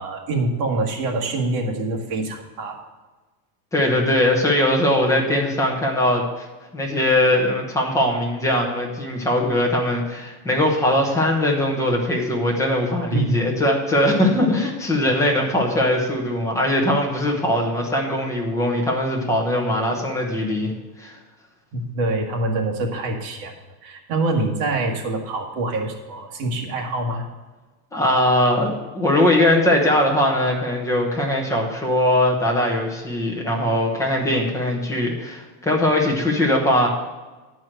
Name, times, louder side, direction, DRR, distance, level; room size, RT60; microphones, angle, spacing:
voice 1, 0.0-2.8 13.1-13.4 21.7-23.5 23.8-27.3, right 2 dB, 45° right, 1 dB, 1.7 m, -25 dB
voice 2, 3.7-6.5 6.7-20.7 21.0-21.1 27.9-36.9, left 1 dB, 5° left, -1 dB, 1.0 m, -20 dB
10.5 x 4.7 x 7.6 m, 1.2 s
cardioid pair, 175°, 44 cm